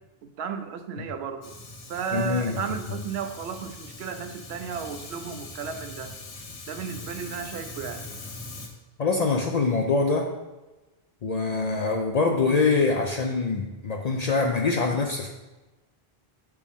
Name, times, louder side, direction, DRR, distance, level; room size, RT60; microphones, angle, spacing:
voice 1, 0.2-1.5 1.9-6.2 6.7-8.1, right 7 dB, 80° right, 7 dB, 0.8 m, -34 dB
Fire, 1.4-8.7, left 2 dB, 90° left, 1.2 m, -41 dB
voice 2, 2.1-2.6 9.0-10.3 11.2-15.3, left 4 dB, 55° left, 2 dB, 0.5 m, -24 dB
7.1 x 4.5 x 3.5 m, 1.1 s
omnidirectional pair, 1.1 m